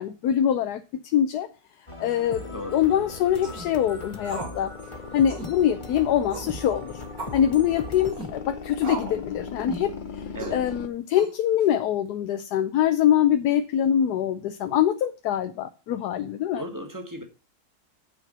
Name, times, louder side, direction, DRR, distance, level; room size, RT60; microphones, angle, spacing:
voice 1, 0.0-1.5 2.0-4.7 5.1-7.0 7.3-10.2 10.5-16.6, left 10 dB, 75° left, 1.2 m, -24 dB
sound 1, 1.9-8.1, left 2 dB, 20° left, 0.9 m, -40 dB
sound 2, 2.2-10.9, left 5 dB, 45° left, 0.7 m, -40 dB
sound 3, 3.3-3.7 4.2-4.6 4.8-4.9 5.3-5.5 6.3-6.6 7.2-7.4 8.1-8.3 8.8-9.2 9.7-9.9 10.4-10.6 11.1-11.6, right 2 dB, 60° right, 3.1 m, -36 dB
voice 2, 16.6-17.2, equal, 10° right, 1.3 m, -35 dB
9.0 x 4.4 x 6.7 m
omnidirectional pair, 1.8 m